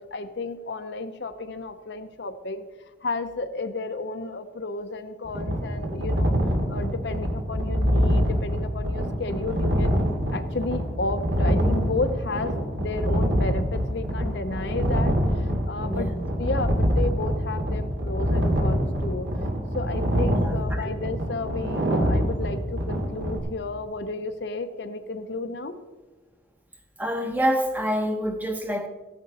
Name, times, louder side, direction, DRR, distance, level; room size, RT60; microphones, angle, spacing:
voice 1, 0.0-2.7 3.0-6.3 6.7-10.0 10.3-19.5 19.7-25.8, left 3 dB, 65° left, 9 dB, 0.7 m, -32 dB
sound 1, 5.3-23.4, equal, 70° right, 2.4 m, -25 dB
voice 2, 15.9-16.2 20.3-20.9 27.0-28.9, equal, 10° right, 5 dB, 0.9 m, -27 dB
14.5 x 10.5 x 4.2 m, 1.2 s
head